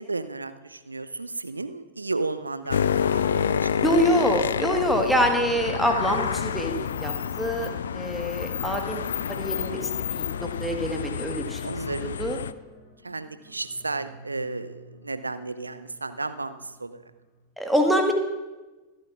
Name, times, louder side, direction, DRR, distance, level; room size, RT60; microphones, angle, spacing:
voice 1, 0.0-3.7 4.1-4.2 7.6-8.2 11.6-12.1 13.0-17.0, right 3 dB, 80° right, 12 dB, 0.5 m, -33 dB
sound 1, 2.6-17.4, left 1 dB, 50° left, 3.9 m, -48 dB
sound 2, 2.7-12.5, left 8 dB, 65° left, 0.3 m, -28 dB
voice 2, 3.8-9.0 9.3-11.6 12.0-12.4 17.6-18.1, equal, ahead, 3 dB, 1.4 m, -25 dB
25.0 x 9.0 x 2.4 m, 1.2 s
figure-of-eight pair, 90°, 0 cm